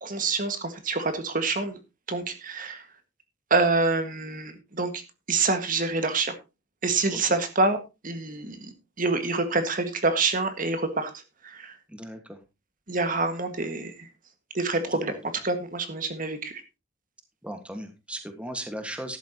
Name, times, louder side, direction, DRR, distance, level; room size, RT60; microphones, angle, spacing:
voice 1, 0.0-1.8 2.1-2.8 3.5-5.0 5.3-6.3 6.8-7.8 8.0-8.7 9.0-11.1 11.4-11.8 12.9-14.1 14.5-15.1 15.4-16.6, right 3 dB, 45° right, 8 dB, 1.7 m, -26 dB
voice 2, 11.9-12.4 14.9-15.4 17.4-19.2, right 1 dB, 5° right, 6 dB, 1.6 m, -37 dB
13.0 x 11.5 x 2.9 m, 0.27 s
head